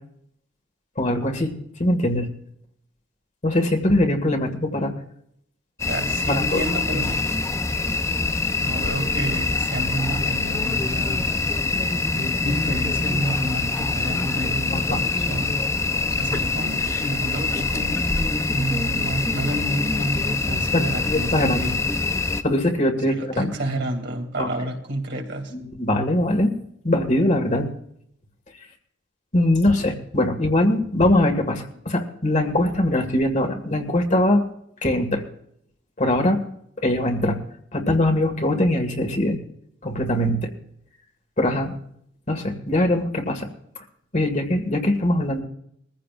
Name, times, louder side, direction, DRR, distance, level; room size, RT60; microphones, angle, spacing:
voice 1, 1.0-2.3 3.4-4.9 6.3-6.7 14.9-15.0 20.7-21.6 22.4-23.5 24.4-24.5 25.5-26.6 26.8-27.7 29.3-34.4 34.8-35.2 36.0-36.4 36.8-37.4 37.7-39.4 39.8-40.5 41.4-41.7 42.3-43.5 44.1-45.4, left 1 dB, 40° left, 4 dB, 1.9 m, -22 dB
sound 1, 5.8-22.4, left 3 dB, 15° left, 0.6 m, -24 dB
voice 2, 5.9-7.3 8.6-11.3 12.1-15.6 16.1-18.1 18.5-21.8 23.1-25.5, right 1 dB, 60° right, 2 dB, 2.8 m, -29 dB
22.5 x 15.0 x 2.5 m, 0.71 s
head